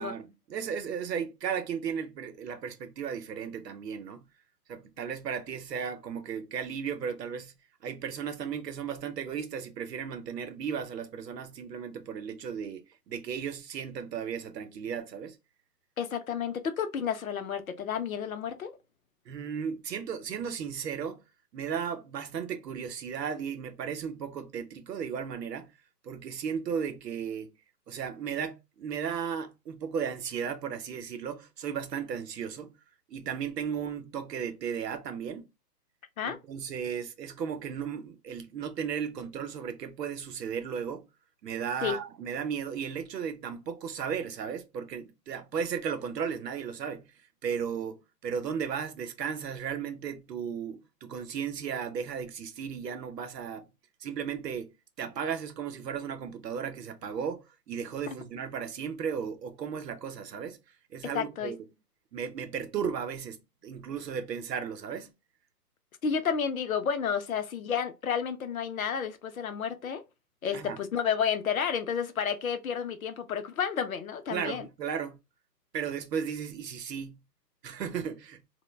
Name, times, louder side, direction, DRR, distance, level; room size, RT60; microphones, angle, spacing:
voice 1, 0.0-4.3 4.7-7.5 7.8-15.4 19.3-21.2 21.5-25.7 26.0-27.5 27.9-32.7 33.1-35.5 36.2-41.1 41.4-47.0 47.4-48.0 48.2-53.7 54.0-54.7 55.0-60.6 60.9-61.6 62.1-65.1 70.5-70.8 74.3-75.2 75.7-77.2 77.6-78.4, right 7 dB, 80° right, 0.7 m, -35 dB
voice 2, 16.0-18.7 36.2-36.4 41.8-42.0 61.1-61.5 66.0-70.0 70.4-74.7, left 7 dB, 60° left, 0.5 m, -31 dB
2.2 x 2.1 x 3.1 m
hypercardioid pair, 170°, 49 cm